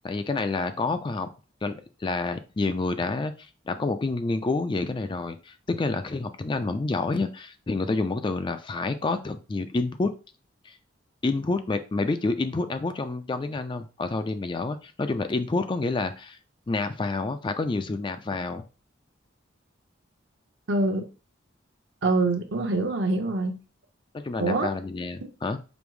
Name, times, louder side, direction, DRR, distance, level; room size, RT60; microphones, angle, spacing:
voice 1, 0.0-1.3 1.6-3.3 3.7-10.1 10.6-10.7 11.2-16.4 16.7-18.6 24.1-25.6, left 3 dB, 25° left, 10 dB, 0.3 m, -28 dB
voice 2, 20.7-21.1 22.0-23.6 24.4-24.7 25.2-25.3, right 2 dB, 65° right, 5 dB, 0.8 m, -25 dB
5.2 x 2.0 x 4.7 m, 0.32 s
head